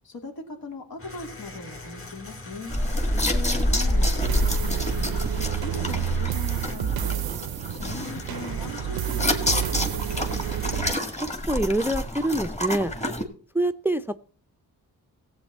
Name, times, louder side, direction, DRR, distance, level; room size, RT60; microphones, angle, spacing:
voice 1, 0.0-2.7 3.7-5.2 5.6-7.2 7.7-10.3, left 3 dB, 75° left, 3 dB, 2.8 m, -40 dB
sound 1, 1.0-6.7 7.9-11.5, left 2 dB, 35° left, 2.1 m, -42 dB
sound 2, 2.7-13.2, left 1 dB, 20° left, 1.9 m, -28 dB
voice 2, 3.1-3.7 11.5-12.9 13.5-14.2, right 1 dB, 5° right, 12 dB, 0.5 m, -26 dB
sound 3, 4.2-10.9, right 11 dB, 85° right, 0.5 m, -29 dB
16.5 x 8.2 x 4.2 m, 0.42 s
wide cardioid pair, 105°, 36 cm